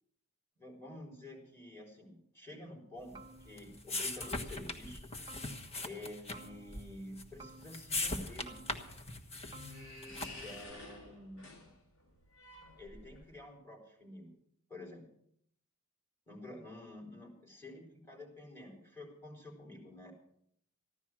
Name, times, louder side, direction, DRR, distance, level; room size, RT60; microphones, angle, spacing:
voice 1, 0.6-5.1 5.8-8.6 10.0-10.1 10.4-11.7 12.8-14.3 14.7-15.0 16.3-20.1, left 1 dB, 10° left, -1 dB, 4.5 m, -49 dB
sound 1, 3.1-10.6, left 2 dB, 30° left, 1.4 m, -41 dB
sound 2, 3.1-3.9 4.2-5.0 5.3-6.0 6.3-7.1 7.4-8.2 8.5-9.2 9.5-10.0, right 3 dB, 20° right, 0.7 m, -56 dB
sound 3, 8.6-13.4, left 2 dB, 70° left, 7.1 m, -51 dB
15.0 x 11.5 x 6.2 m, 0.69 s
head